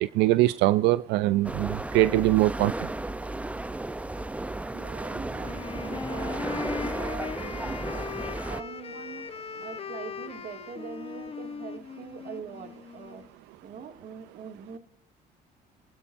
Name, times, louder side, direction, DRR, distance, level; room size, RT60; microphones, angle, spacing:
voice 1, 0.0-2.7, right 16 dB, 90° right, 14 dB, 0.4 m, -22 dB
sound 1, 1.4-8.6, right 2 dB, 10° right, 0.6 m, -34 dB
voice 2, 4.7-8.0 8.5-13.3 13.6-14.8, right 6 dB, 55° right, 5 dB, 2.2 m, -43 dB
Wind instrument woodwind instrument, 5.4-13.3, left 6 dB, 35° left, 1.0 m, -39 dB
26.5 x 12.5 x 2.6 m, 0.66 s
cardioid pair, 110°, 17 cm